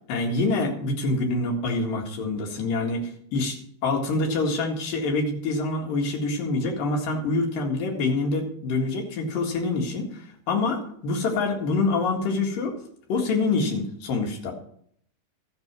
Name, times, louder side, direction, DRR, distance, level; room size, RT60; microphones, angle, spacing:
voice 1, 0.1-3.6 3.8-12.8 13.1-14.5, left 3 dB, 90° left, 1 dB, 3.6 m, -26 dB
13.5 x 8.1 x 6.1 m, 0.66 s
omnidirectional pair, 3.8 m